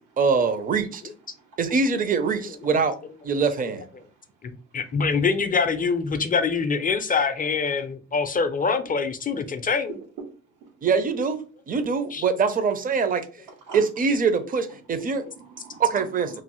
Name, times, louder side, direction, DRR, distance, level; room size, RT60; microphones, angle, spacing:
voice 1, 0.2-1.0 1.6-2.9 3.2-3.8 10.8-11.4 11.7-13.2 13.7-15.2 15.8-16.3, right 5 dB, 30° right, 0.5 m, -23 dB
voice 2, 4.4-9.9 12.1-12.2, left 5 dB, 30° left, 0.4 m, -24 dB
voice 3, 9.9-10.7 13.7-13.9 15.4-16.0, right 5 dB, 90° right, 0.9 m, -42 dB
3.0 x 2.0 x 3.0 m
cardioid pair, 90°, 30 cm